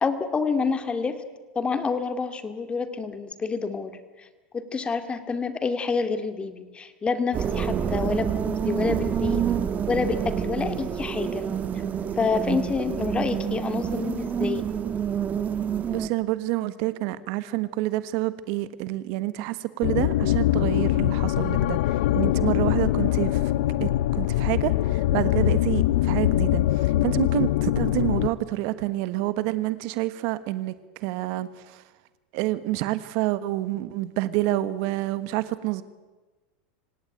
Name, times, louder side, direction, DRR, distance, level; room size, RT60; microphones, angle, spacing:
voice 1, 0.0-1.2 1.5-3.9 4.5-9.4 9.9-11.5 12.2-14.6 22.4-22.5, left 4 dB, 20° left, 9 dB, 2.5 m, -28 dB
sound 1, 7.3-16.1, right 8 dB, 30° right, 1.6 m, -28 dB
voice 2, 15.9-23.5 23.8-30.7 31.0-31.8 32.3-35.8, right 16 dB, 60° right, 14 dB, 1.3 m, -28 dB
sound 2, 19.8-28.3, left 14 dB, 70° left, 0.8 m, -23 dB
25.5 x 17.5 x 9.0 m, 1.2 s
hypercardioid pair, 115°, 5 cm